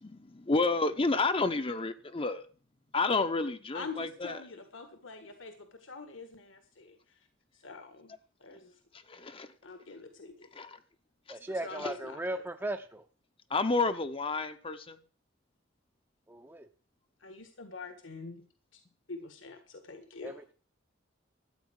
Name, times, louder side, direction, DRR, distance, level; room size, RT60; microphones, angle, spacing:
voice 1, 0.0-2.4 2.9-4.4 9.1-9.5 10.6-10.8 13.5-15.0, left 3 dB, 30° left, 0.8 m, -30 dB
voice 2, 3.7-5.5 5.8-7.0 7.6-8.1 8.4-8.7 9.6-10.5 11.6-12.4 17.2-18.4 19.1-20.4, left 4 dB, 70° left, 1.7 m, -45 dB
voice 3, 11.3-13.1 16.3-16.7 20.2-20.5, right 1 dB, 10° right, 0.7 m, -37 dB
13.5 x 9.1 x 6.3 m
head